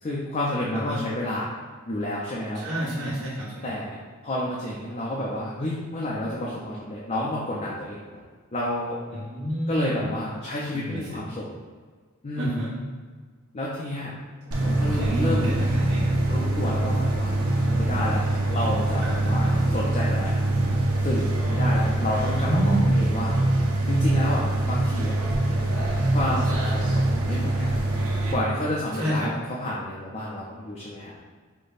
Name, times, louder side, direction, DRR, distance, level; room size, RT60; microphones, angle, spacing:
voice 1, 0.0-1.5 1.9-2.7 3.6-8.2 8.5-9.0 9.7-11.5 12.2-12.6 13.5-14.1 14.6-15.6 16.3-18.2 18.5-20.4 21.0-23.3 23.9-25.2 26.1-27.7 28.3-31.1, left 1 dB, 30° left, -5 dB, 0.5 m, -30 dB
voice 2, 2.5-3.6 9.1-10.1 10.7-11.2 12.4-12.8 14.8-16.1 19.0-19.6 22.4-22.9 27.1-27.3 28.9-29.3, equal, 60° right, -14 dB, 1.2 m, -30 dB
sound 1, 14.5-28.3, right 1 dB, 85° right, 0.8 m, -23 dB
5.1 x 2.2 x 4.0 m, 1.5 s
head